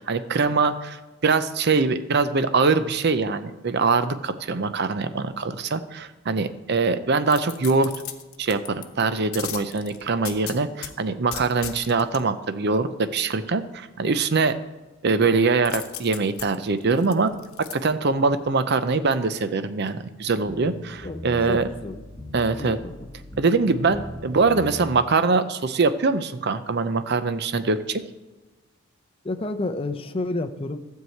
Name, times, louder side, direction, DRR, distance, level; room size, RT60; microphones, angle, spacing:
voice 1, 0.0-7.9 8.4-14.5 15.0-17.3 17.7-21.7 22.3-22.8 23.4-28.0, right 4 dB, 50° right, 11 dB, 0.6 m, -23 dB
sound 1, 7.3-8.9 9.3-10.9 11.3-12.2 15.6-17.7 18.2-18.3, left 10 dB, 85° left, 1.0 m, -36 dB
sound 2, 20.5-25.0, equal, 5° left, 1.4 m, -39 dB
voice 2, 21.5-22.0 22.6-22.9 29.2-30.8, left 2 dB, 25° left, 7 dB, 0.6 m, -30 dB
12.5 x 4.7 x 7.8 m, 1.2 s
head